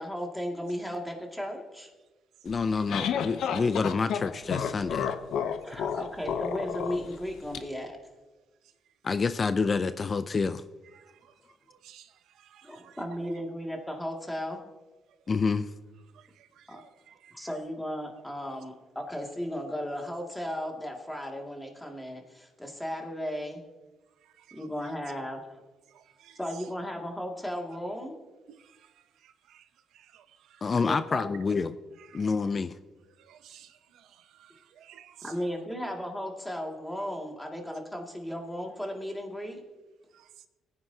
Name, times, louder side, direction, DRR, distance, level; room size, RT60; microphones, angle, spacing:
voice 1, 0.0-1.9 5.6-7.9 12.6-14.6 16.7-16.8 17.3-23.6 24.5-25.6 26.4-28.2 30.8-31.3 35.2-39.6, equal, 5° left, 2.2 m, -35 dB
sound 1, 2.5-7.6, left 7 dB, 75° left, 0.8 m, -31 dB
voice 2, 2.5-5.1 9.0-10.6 15.3-15.7 30.6-31.7 32.1-32.7, left 4 dB, 40° left, 0.4 m, -27 dB
voice 3, 12.5-13.3 16.6-17.3 24.6-24.7 26.2-26.7 28.5-28.6 29.5-29.6 30.1-30.2 30.6-30.7 32.0-32.3 33.3-33.7 34.8-35.3, right 10 dB, 80° right, 0.7 m, -52 dB
18.5 x 9.6 x 2.8 m
cardioid pair, 90°, 0 cm